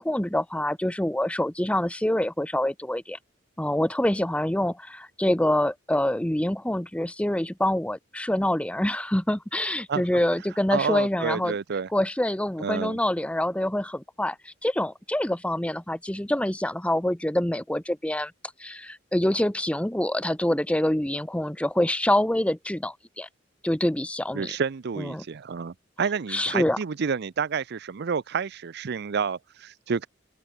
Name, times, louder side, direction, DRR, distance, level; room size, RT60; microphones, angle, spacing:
voice 1, 0.0-3.2 3.6-11.6 11.9-18.3 18.6-23.3 23.6-24.5 25.0-25.2 26.3-26.8, left 1 dB, 5° left, 0.8 m, -26 dB
voice 2, 10.7-11.9 12.6-13.0 24.3-30.1, right 6 dB, 55° right, 0.5 m, -29 dB
head